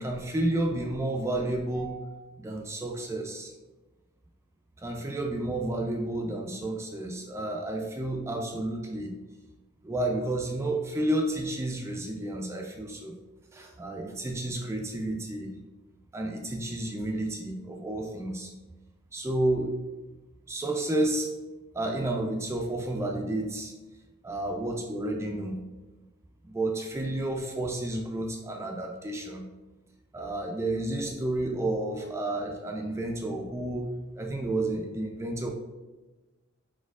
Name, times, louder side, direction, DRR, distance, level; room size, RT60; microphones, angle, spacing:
voice 1, 0.0-3.5 4.8-9.2 9.8-13.1 13.5-15.5 16.1-18.5 19.1-19.8 20.5-21.3 21.7-23.7 24.2-25.6 26.4-29.4 30.1-35.5, right 1 dB, 15° right, 2 dB, 0.3 m, -31 dB
4.3 x 4.3 x 2.4 m, 1.2 s
head